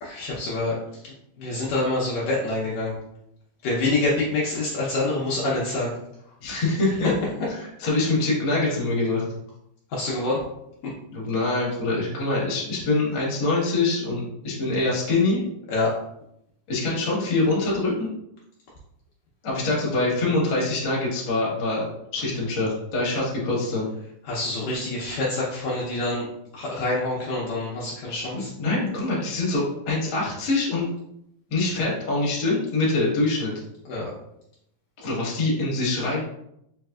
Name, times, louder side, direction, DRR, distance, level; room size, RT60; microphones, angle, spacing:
voice 1, 0.0-0.8 1.0-3.0 3.6-6.0 9.9-10.4 15.7-15.9 24.2-26.2 26.5-28.5 33.9-34.1, left 2 dB, 70° left, -5 dB, 1.9 m, -26 dB
voice 2, 6.4-7.1 7.8-9.2 11.1-15.4 16.7-18.1 19.4-21.8 22.1-23.9 28.3-30.9 31.5-33.5 35.0-36.2, left 2 dB, 45° left, -5 dB, 1.5 m, -24 dB
4.8 x 3.2 x 2.3 m, 0.78 s
omnidirectional pair, 3.6 m